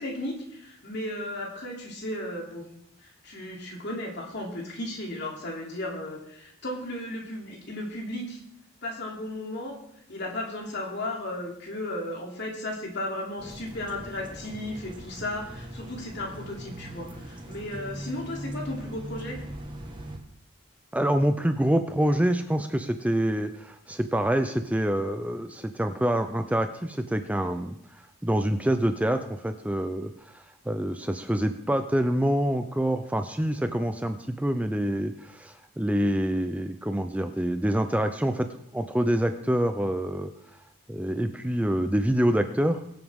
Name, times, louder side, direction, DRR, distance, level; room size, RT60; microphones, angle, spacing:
voice 1, 0.0-2.6 3.0-8.4 8.8-9.8 10.1-19.4, left 1 dB, 55° left, -1 dB, 3.0 m, -35 dB
sound 1, 13.4-20.2, right 1 dB, 25° right, 1.5 m, -40 dB
voice 2, 20.9-40.3 40.9-42.8, right 1 dB, 5° right, 8 dB, 0.5 m, -26 dB
22.0 x 7.9 x 3.6 m, 0.75 s
head